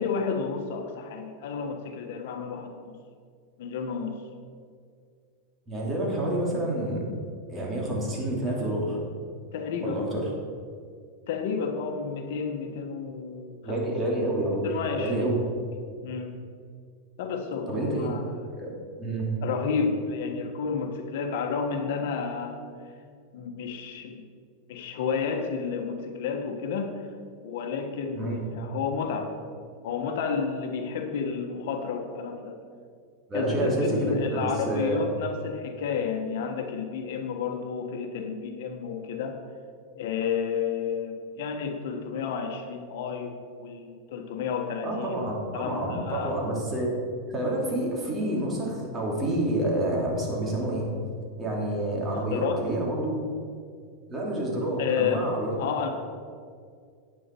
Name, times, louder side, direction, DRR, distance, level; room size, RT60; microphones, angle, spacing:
voice 1, 0.0-2.9 3.6-4.1 9.5-10.0 11.3-13.8 14.6-15.3 16.0-16.4 17.2-18.4 19.4-22.6 23.3-24.2 24.7-27.0 27.4-29.3 29.8-32.6 33.3-39.4 39.9-46.3 52.1-52.6 54.8-55.2 55.5-55.9, left 6 dB, 70° left, 4 dB, 1.2 m, -31 dB
voice 2, 5.7-7.0 7.5-9.0 9.8-10.3 13.6-15.4 17.7-18.2 18.5-19.3 28.1-28.5 33.3-35.0 44.8-46.9 47.3-50.9 51.4-53.2 54.1-55.9, right 1 dB, 20° right, -2 dB, 2.8 m, -28 dB
10.0 x 8.9 x 4.5 m, 2.2 s
supercardioid pair, 135°, 0 cm